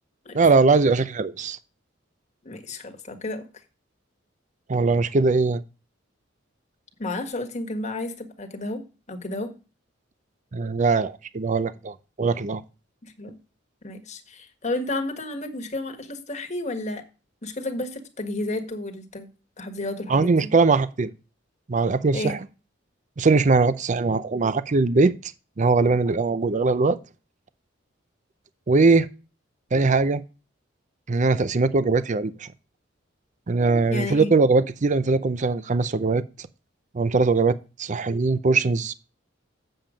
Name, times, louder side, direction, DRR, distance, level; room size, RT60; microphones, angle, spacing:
voice 1, 0.3-1.6 4.7-5.6 10.5-12.6 20.1-21.1 21.7-22.4 23.2-25.3 25.6-27.0 28.7-29.1 29.7-30.2 31.1-32.5 33.5-36.5 36.9-38.9, right 3 dB, 40° right, 0.5 m, -21 dB
voice 2, 2.4-3.5 7.0-8.8 9.1-9.6 13.0-13.4 13.8-17.0 17.4-19.3 19.6-20.5 22.1-22.4 33.9-34.4, left 2 dB, 40° left, 1.6 m, -31 dB
7.8 x 7.3 x 5.0 m
head